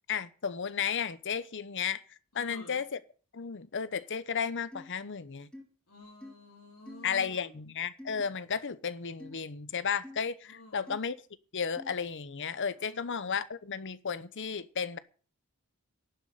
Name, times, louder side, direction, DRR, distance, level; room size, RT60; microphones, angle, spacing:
voice 1, 0.1-2.0 2.3-3.0 3.3-5.5 7.0-11.2 11.5-15.0, left 6 dB, 60° left, 0.9 m, -33 dB
voice 2, 2.3-2.8 5.9-7.5 10.5-11.0 12.8-13.4, left 2 dB, 85° left, 3.6 m, -51 dB
sound 1, 4.7-4.9 5.5-5.6 6.2-6.3 6.9-7.1 8.0-8.2 9.2-9.4 10.0-10.2 10.9-11.0 11.8-11.9, left 1 dB, 5° left, 3.0 m, -46 dB
11.5 x 7.4 x 9.3 m
head